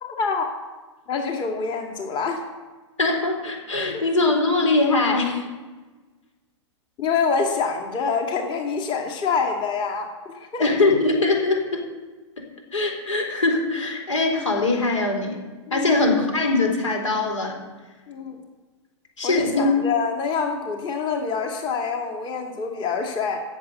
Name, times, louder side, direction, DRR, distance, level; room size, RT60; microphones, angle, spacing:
voice 1, 0.0-0.5 1.1-2.4 3.9-4.0 7.0-10.6 15.7-16.0 18.1-18.4 19.2-23.4, left 5 dB, 30° left, 3 dB, 2.2 m, -26 dB
voice 2, 3.0-5.5 10.6-11.8 12.4-12.5 12.7-15.4 15.7-17.6 19.2-19.7, left 2 dB, 90° left, 3 dB, 4.2 m, -22 dB
15.5 x 7.4 x 8.1 m, 1.3 s
hypercardioid pair, 120°, 16 cm